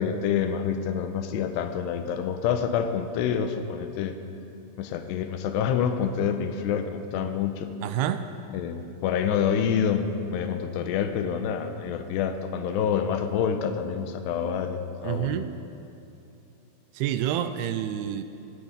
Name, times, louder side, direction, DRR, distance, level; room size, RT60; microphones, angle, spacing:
voice 1, 0.0-4.2 4.8-7.7 8.5-15.4, left 7 dB, 85° left, 8 dB, 3.0 m, -27 dB
voice 2, 7.8-8.2 15.0-15.5 16.9-18.2, right 11 dB, 80° right, 10 dB, 2.4 m, -28 dB
16.0 x 15.5 x 5.2 m, 2.8 s
omnidirectional pair, 4.8 m